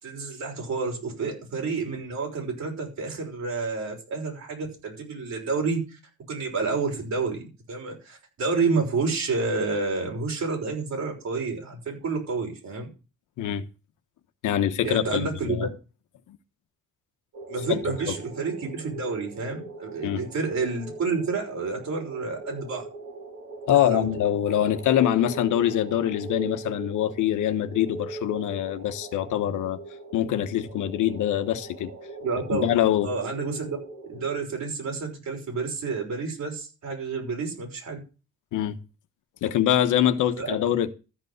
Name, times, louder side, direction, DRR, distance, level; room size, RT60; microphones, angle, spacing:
voice 1, 0.0-6.0 6.3-7.4 7.7-12.9 14.8-15.7 17.5-22.9 23.7-24.1 32.2-32.7 33.0-33.8 34.1-38.0 40.4-40.6, right 4 dB, 65° right, 6.0 m, -29 dB
voice 2, 14.4-15.7 17.7-18.2 20.0-20.2 23.7-29.8 30.1-31.9 32.5-33.1 38.5-38.8 39.4-40.9, left 11 dB, 80° left, 1.2 m, -24 dB
sound 1, 17.3-34.4, right 2 dB, 45° right, 3.3 m, -41 dB
13.5 x 5.4 x 8.0 m
cardioid pair, 90°, 30 cm